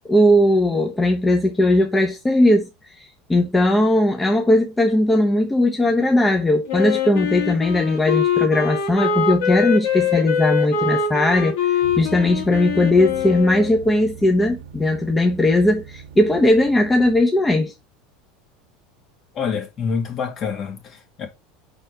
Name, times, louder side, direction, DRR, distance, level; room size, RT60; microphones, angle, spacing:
voice 1, 0.1-2.7 3.0-11.5 12.0-17.7, left 1 dB, 10° left, 1.2 m, -18 dB
Wind instrument woodwind instrument, 6.7-13.8, left 6 dB, 75° left, 2.9 m, -23 dB
sound 1, 11.8-17.2, right 7 dB, 70° right, 1.3 m, -40 dB
voice 2, 19.3-21.3, left 6 dB, 45° left, 2.3 m, -27 dB
5.3 x 4.3 x 4.6 m
supercardioid pair, 105°, 0 cm